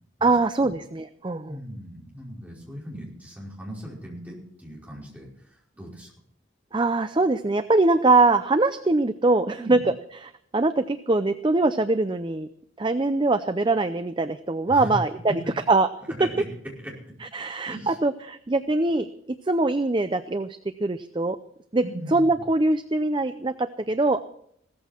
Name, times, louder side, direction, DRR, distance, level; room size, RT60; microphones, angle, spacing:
voice 1, 0.2-1.6 6.7-9.8 10.2-12.5 12.8-15.3 15.7-15.9 17.2-19.1 19.5-21.4 21.7-21.8 22.1-24.2, right 2 dB, 25° right, 10 dB, 0.5 m, -22 dB
voice 2, 1.5-6.1 9.6-9.8 14.7-14.9 15.3-15.4 16.2-16.4 16.8-16.9 17.6-18.0 21.8-22.4, equal, 10° right, -4 dB, 5.2 m, -38 dB
16.5 x 14.0 x 4.4 m, 0.68 s
head